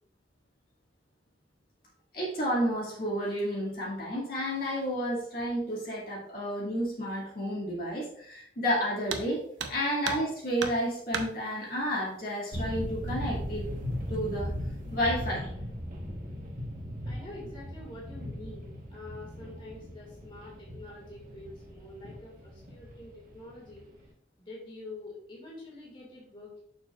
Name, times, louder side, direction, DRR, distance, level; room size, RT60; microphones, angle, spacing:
voice 1, 2.1-9.4 9.7-13.7 14.1-14.5 14.9-15.5, equal, 50° left, -6 dB, 2.1 m, -31 dB
sound 1, 9.1-9.3 9.6-10.3 10.6-11.3 12.5-12.6 13.1-13.2 13.9-14.3 14.7-15.0, right 5 dB, 75° right, 0.8 m, -35 dB
sound 2, 12.5-24.0, equal, 45° right, 1.3 m, -38 dB
voice 2, 17.0-23.9 24.4-26.6, left 2 dB, 25° left, -4 dB, 2.2 m, -46 dB
6.8 x 6.6 x 2.5 m, 0.67 s
head